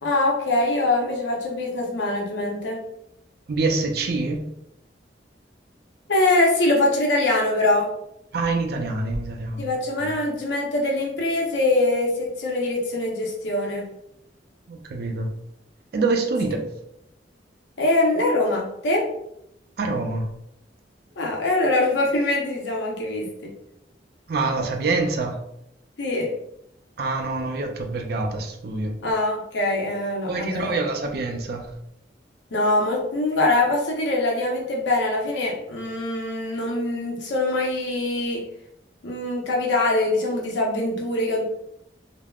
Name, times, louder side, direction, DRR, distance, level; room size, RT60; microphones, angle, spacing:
voice 1, 0.0-2.8 6.1-7.9 9.6-13.9 17.8-19.1 21.2-23.5 26.0-26.3 29.0-30.8 32.5-38.4 39.0-41.4, left 2 dB, 90° left, -1 dB, 0.6 m, -23 dB
voice 2, 3.5-4.4 8.3-9.7 10.0-10.1 14.7-15.3 15.9-16.6 19.8-20.3 24.3-25.4 27.0-28.9 30.3-31.7, right 3 dB, 60° right, 3 dB, 0.4 m, -25 dB
3.4 x 2.0 x 2.3 m, 0.78 s
head